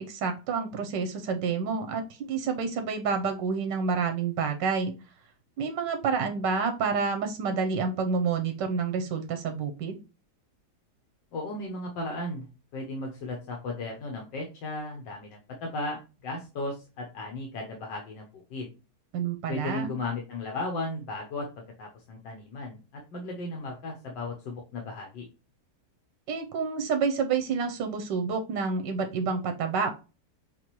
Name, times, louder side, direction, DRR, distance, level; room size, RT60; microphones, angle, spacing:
voice 1, 0.0-4.9 5.6-10.0 19.1-19.9 26.3-29.9, right 5 dB, 90° right, 6 dB, 1.4 m, -29 dB
voice 2, 11.3-12.5 12.7-18.7 19.5-25.2, left 2 dB, 80° left, 0 dB, 1.6 m, -35 dB
6.8 x 2.5 x 3.0 m, 0.30 s
omnidirectional pair, 1.9 m